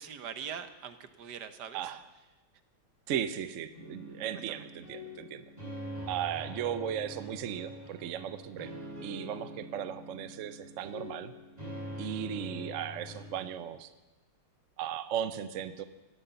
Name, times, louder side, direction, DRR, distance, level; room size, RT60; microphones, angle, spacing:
voice 1, 0.0-1.9 4.3-4.7, right 8 dB, 75° right, 10 dB, 1.6 m, -43 dB
voice 2, 3.1-5.4 6.1-8.7 9.0-11.3 12.0-13.9 14.8-15.8, right 9 dB, 60° right, 12 dB, 0.9 m, -36 dB
sound 1, 3.7-13.3, equal, 20° right, 5.9 m, -44 dB
17.0 x 11.5 x 7.0 m, 1.1 s
omnidirectional pair, 1.8 m